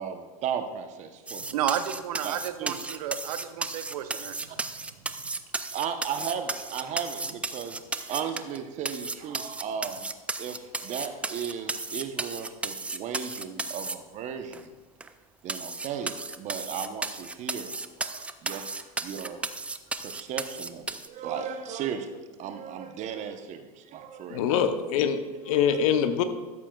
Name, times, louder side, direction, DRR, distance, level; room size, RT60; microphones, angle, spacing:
voice 1, 0.0-1.5 2.2-2.8 5.7-10.1 10.4-14.8 15.4-19.4 20.0-24.5 25.4-25.6, right 7 dB, 40° right, 8 dB, 0.9 m, -36 dB
sound 1, 1.3-8.6 8.8-13.9 14.5-14.6 15.0-15.1 15.5-21.1, right 3 dB, 5° right, 0.3 m, -34 dB
voice 2, 1.5-4.5, right 10 dB, 75° right, 10 dB, 0.7 m, -32 dB
voice 3, 24.3-26.2, left 8 dB, 65° left, 9 dB, 0.8 m, -24 dB
13.0 x 7.3 x 2.3 m, 1.3 s
hypercardioid pair, 110°, 19 cm